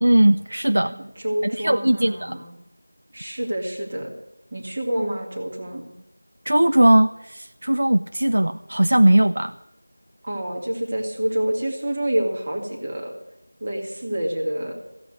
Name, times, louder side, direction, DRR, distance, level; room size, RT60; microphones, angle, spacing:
voice 1, 0.0-0.9 1.4-2.3 6.5-9.5, right 1 dB, 55° right, 10 dB, 0.6 m, -18 dB
voice 2, 0.8-2.5 3.1-4.1 4.5-5.9 10.2-13.1 13.6-14.7, right 1 dB, 20° right, 1 dB, 2.1 m, -27 dB
15.0 x 8.9 x 9.7 m, 0.89 s
figure-of-eight pair, 180°, 0 cm